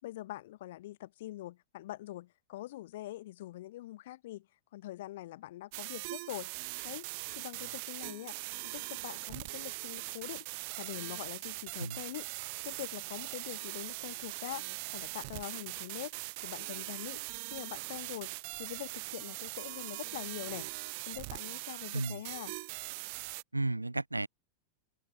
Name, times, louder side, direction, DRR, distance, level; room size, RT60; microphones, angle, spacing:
voice 1, 0.0-4.5 4.7-6.5 6.8-7.1 7.4-8.4 8.7-10.5 10.8-12.3 12.6-14.6 14.9-16.2 16.4-17.2 17.5-20.7 21.1-22.5, left 15 dB, 55° left, 3.5 m, -44 dB
sound 1, 5.7-23.4, right 29 dB, 45° right, 1.8 m, -41 dB
voice 2, 23.5-24.3, right 2 dB, 85° right, 1.8 m, -33 dB
figure-of-eight pair, 90°, 0 cm